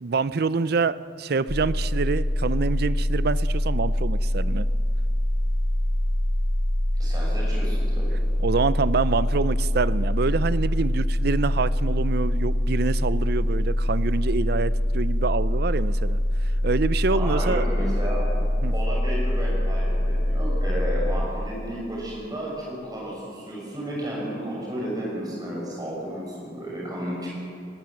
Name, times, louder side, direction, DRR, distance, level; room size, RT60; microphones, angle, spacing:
voice 1, 0.0-4.7 8.4-16.2 16.6-17.7 18.6-18.7, right 4 dB, 60° right, 16 dB, 0.5 m, -26 dB
sound 1, 1.5-21.3, left 1 dB, 70° left, 1.5 m, -24 dB
voice 2, 7.0-8.2 17.1-18.2 18.7-27.3, equal, 20° right, -4 dB, 6.5 m, -32 dB
19.5 x 19.0 x 7.7 m, 2.5 s
head